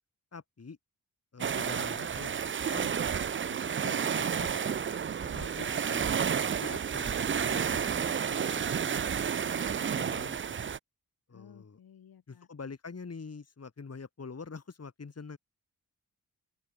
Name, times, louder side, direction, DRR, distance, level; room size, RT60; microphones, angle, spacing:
voice 1, 0.3-0.8 1.3-2.9 3.5-6.1 6.5-9.2 9.6-10.7 11.3-11.8 12.3-15.4, left 4 dB, 45° left, 2.9 m, -46 dB
sound 1, 1.4-10.8, right 7 dB, 35° right, 0.5 m, -31 dB
voice 2, 11.3-12.5, left 8 dB, 85° left, 4.9 m, -56 dB
open air
cardioid pair, 50°, 35 cm